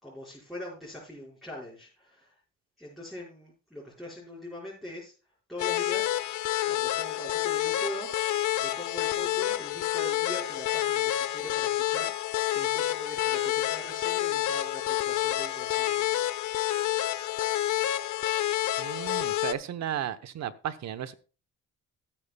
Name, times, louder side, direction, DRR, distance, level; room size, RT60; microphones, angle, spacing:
voice 1, 0.0-2.3 2.8-5.1 5.5-6.1 6.6-8.2 8.6-16.9, left 1 dB, ahead, -7 dB, 5.0 m, -42 dB
sound 1, 5.6-19.5, left 13 dB, 75° left, 0.8 m, -28 dB
voice 2, 18.8-21.1, right 10 dB, 65° right, 12 dB, 1.0 m, -34 dB
16.5 x 8.8 x 2.3 m, 0.35 s
cardioid pair, 90°, 30 cm